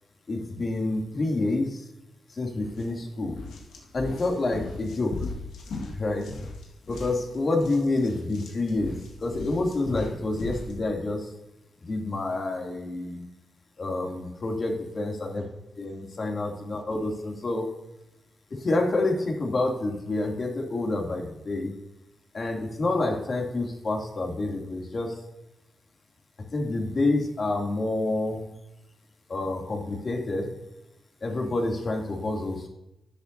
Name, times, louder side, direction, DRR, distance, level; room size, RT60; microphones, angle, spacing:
voice 1, 0.3-1.9 2.3-3.4 3.9-5.3 5.9-6.3 6.9-11.3 11.8-13.2 13.8-15.4 15.8-17.7 18.5-21.7 22.3-25.2 26.5-28.4 29.3-30.5 31.2-32.7, left 2 dB, 50° left, 0 dB, 2.8 m, -28 dB
sound 1, 2.6-2.9 3.3-10.8, left 3 dB, 85° left, 1.9 m, -39 dB
12.0 x 9.1 x 2.8 m, 0.92 s
supercardioid pair, 55°, 0 cm